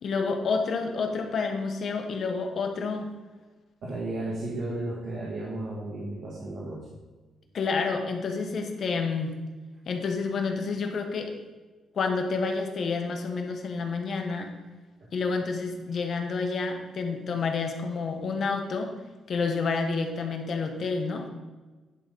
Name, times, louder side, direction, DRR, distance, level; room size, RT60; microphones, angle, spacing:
voice 1, 0.0-3.1 7.5-9.4 9.9-11.3 11.9-14.5 15.1-18.9 19.3-21.3, left 4 dB, 50° left, 4 dB, 1.1 m, -29 dB
voice 2, 3.8-6.9 15.0-15.1, right 2 dB, 65° right, -6 dB, 1.9 m, -34 dB
10.0 x 3.8 x 5.3 m, 1.3 s
cardioid pair, 120°, 0 cm